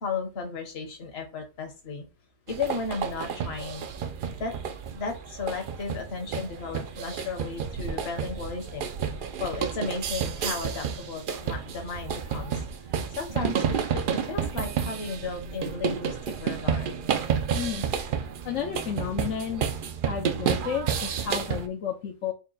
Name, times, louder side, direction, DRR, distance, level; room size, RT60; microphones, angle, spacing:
voice 1, 0.0-2.1 2.5-3.9 4.4-4.6 4.9-8.9 9.4-12.6 13.1-16.9, left 4 dB, 55° left, 3 dB, 1.2 m, -34 dB
sound 1, 2.5-21.7, right 7 dB, 60° right, 0.5 m, -31 dB
voice 2, 17.5-17.9 18.4-19.7 20.0-22.3, left 8 dB, 80° left, 0 dB, 1.0 m, -32 dB
4.2 x 2.2 x 3.9 m, 0.30 s
omnidirectional pair, 1.3 m